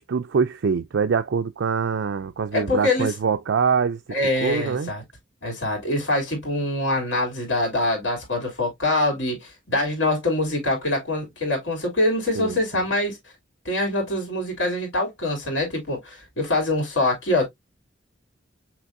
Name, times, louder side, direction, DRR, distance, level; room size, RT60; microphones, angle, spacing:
voice 1, 0.0-4.0 4.4-4.9 12.3-12.8, right 6 dB, 75° right, 0.4 m, -24 dB
voice 2, 2.5-3.1 4.1-5.0 5.4-13.2 13.6-17.5, left 2 dB, 85° left, 2.9 m, -24 dB
6.1 x 3.2 x 2.6 m
head